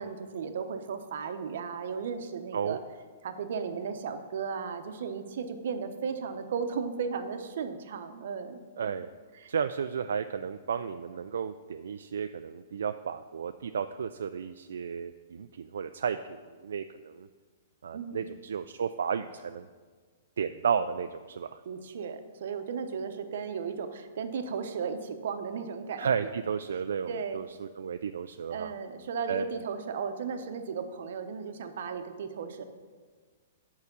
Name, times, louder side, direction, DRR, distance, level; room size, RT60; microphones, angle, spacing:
voice 1, 0.0-2.8 3.2-8.6 9.3-9.5 17.9-18.3 21.7-26.3 27.1-27.4 28.5-32.6, right 6 dB, 70° right, 8 dB, 0.8 m, -35 dB
voice 2, 8.8-9.1 9.5-17.3 17.8-19.7 20.4-21.6 26.0-28.7 29.3-29.5, right 7 dB, 85° right, 9 dB, 0.3 m, -33 dB
8.3 x 4.9 x 6.7 m, 1.5 s
hypercardioid pair, 150°, 0 cm